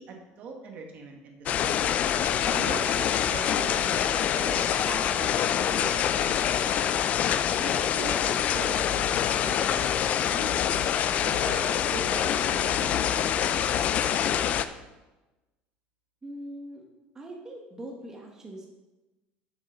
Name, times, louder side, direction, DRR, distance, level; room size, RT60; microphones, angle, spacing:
voice 1, 0.0-1.8 2.5-6.9 7.6-10.6 11.2-14.7, right 4 dB, 45° right, 2 dB, 1.3 m, -41 dB
sound 1, 1.5-14.7, left 9 dB, 40° left, 0.3 m, -25 dB
voice 2, 16.2-16.8 17.1-18.7, right 1 dB, 15° right, -1 dB, 1.1 m, -41 dB
7.7 x 5.3 x 6.2 m, 1.1 s
cardioid pair, 160°, 4 cm